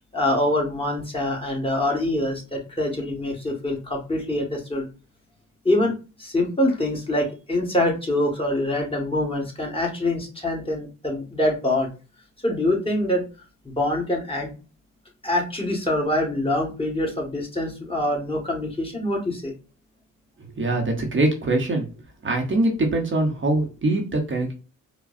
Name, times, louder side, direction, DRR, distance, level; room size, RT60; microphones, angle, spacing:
voice 1, 0.1-4.9 5.6-5.9 6.2-11.9 12.4-13.2 13.6-14.5 15.2-19.5, left 1 dB, 15° left, -1 dB, 1.5 m, -24 dB
voice 2, 20.6-21.9 22.2-24.5, right 2 dB, 40° right, 2 dB, 0.9 m, -23 dB
4.9 x 2.2 x 2.4 m, 0.32 s
cardioid pair, 90°, 32 cm